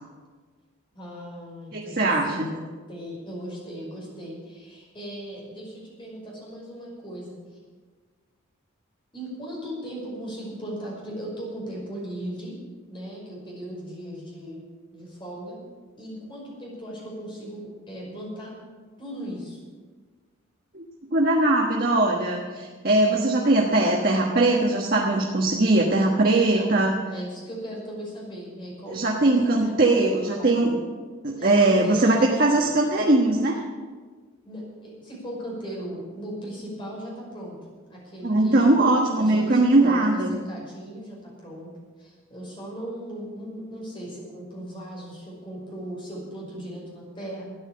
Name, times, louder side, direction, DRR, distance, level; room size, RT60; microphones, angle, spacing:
voice 1, 0.9-7.4 9.1-12.6 12.9-14.6 14.9-15.6 16.0-18.5 19.0-19.6 26.3-26.8 27.1-30.6 31.3-32.7 34.4-37.6 37.9-38.7 39.2-40.0 40.3-41.7 42.0-47.4, equal, 25° left, -3 dB, 5.6 m, -37 dB
voice 2, 1.7-2.5 20.7-20.8 21.1-26.9 28.9-30.8 31.2-33.6 38.2-40.4, right 2 dB, 45° right, -1 dB, 1.3 m, -20 dB
13.5 x 9.7 x 8.5 m, 1.5 s
head